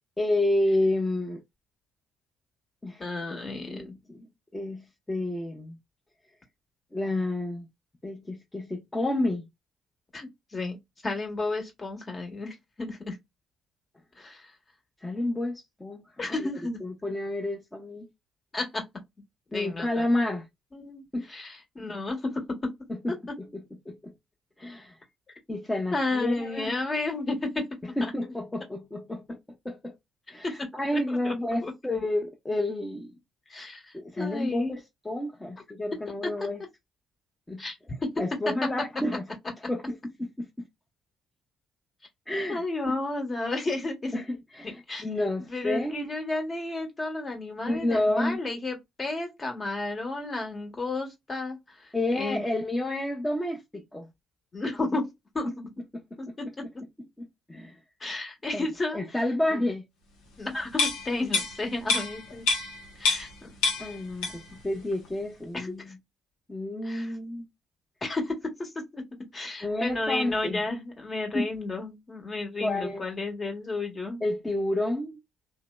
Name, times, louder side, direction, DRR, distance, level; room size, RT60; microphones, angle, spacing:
voice 1, 0.2-1.4 2.8-3.0 3.7-4.3 4.5-5.8 6.9-7.7 8.0-9.4 15.0-16.0 16.8-18.1 19.5-20.5 21.1-21.3 22.9-24.1 24.6-24.9 25.5-26.8 28.0-29.4 29.6-29.9 30.3-33.1 33.9-36.6 37.5-37.6 38.2-39.2 39.7-40.5 42.3-43.0 44.1-46.1 47.7-48.4 51.9-54.1 57.2-57.7 58.5-58.7 58.9-59.8 63.8-66.0 66.5-67.5 69.6-70.6 71.3-71.5 72.6-73.1 74.2-75.2, left 1 dB, 15° left, 0.7 m, -30 dB
voice 2, 3.0-3.8 10.1-10.8 11.0-13.2 14.2-14.5 16.2-16.8 18.5-18.8 19.5-20.1 20.7-22.7 25.9-27.7 28.0-28.4 30.4-30.7 30.9-31.3 31.6-31.7 33.5-34.7 37.6-37.7 42.5-44.2 44.6-45.1 45.5-51.9 52.1-52.4 54.5-55.5 56.2-56.5 58.0-59.0 59.5-59.6 60.4-62.5 63.0-63.5 65.5-65.9 66.8-67.1 68.0-69.0 69.3-74.2, left 2 dB, 35° left, 1.2 m, -32 dB
sound 1, 60.7-63.4 63.6-64.6 64.9-65.1, left 4 dB, 80° left, 0.8 m, -27 dB
2.7 x 2.0 x 2.2 m
hypercardioid pair, 60°, 0 cm